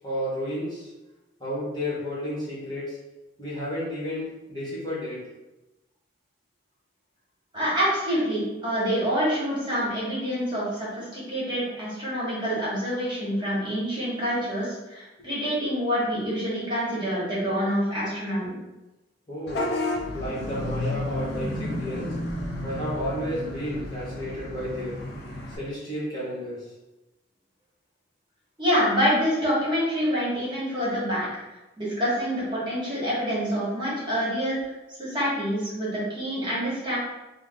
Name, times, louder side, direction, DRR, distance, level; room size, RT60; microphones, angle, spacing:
voice 1, 0.0-0.9 1.4-3.0 3.4-5.2 19.3-19.7 20.1-22.2 22.6-25.0 25.6-26.6, equal, 25° left, -8 dB, 1.1 m, -32 dB
voice 2, 7.5-18.6 28.6-31.3 31.8-34.7 35.0-37.0, equal, 25° right, -8 dB, 1.3 m, -26 dB
Vehicle horn car horn honking / Bus, 19.5-25.6, left 1 dB, 60° left, 0.6 m, -32 dB
3.5 x 2.0 x 3.7 m, 1.0 s
head